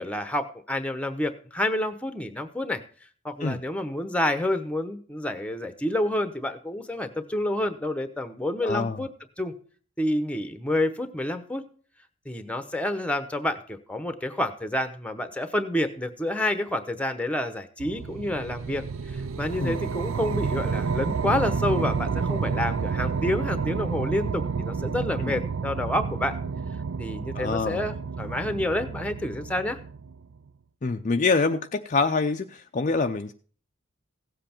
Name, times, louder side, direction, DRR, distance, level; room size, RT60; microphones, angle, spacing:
voice 1, 0.0-2.8 3.2-9.1 9.4-9.5 10.0-11.6 12.3-26.3 27.0-29.8, left 1 dB, 5° left, 9 dB, 0.9 m, -29 dB
voice 2, 8.6-9.0 19.6-19.8 25.2-25.4 27.3-27.9 30.8-33.3, left 4 dB, 35° left, 6 dB, 0.5 m, -26 dB
sound 1, 17.8-30.3, right 5 dB, 70° right, 0.5 m, -30 dB
16.0 x 7.6 x 4.4 m, 0.43 s
head